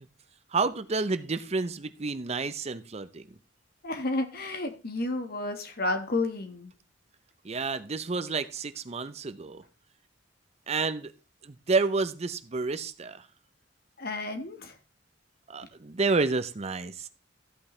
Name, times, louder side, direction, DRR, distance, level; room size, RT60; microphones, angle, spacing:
voice 1, 0.5-3.4 7.4-9.6 10.7-11.1 11.4-13.3 15.5-17.1, right 4 dB, 35° right, 0.6 m, -30 dB
voice 2, 3.8-6.7 14.0-14.8, left 2 dB, 55° left, 1.6 m, -31 dB
14.0 x 8.6 x 3.2 m
head